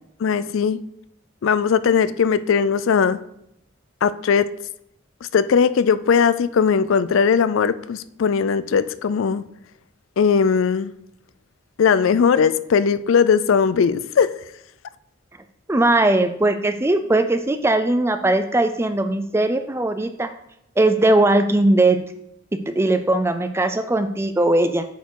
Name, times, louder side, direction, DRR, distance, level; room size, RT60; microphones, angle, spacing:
voice 1, 0.2-0.8 1.4-3.2 4.0-4.5 5.3-9.4 10.2-10.9 11.8-14.3, left 6 dB, 75° left, 15 dB, 0.4 m, -18 dB
voice 2, 15.7-20.3 20.8-22.0 22.5-24.9, right 2 dB, 10° right, 9 dB, 0.4 m, -19 dB
8.1 x 4.5 x 4.7 m, 0.76 s
head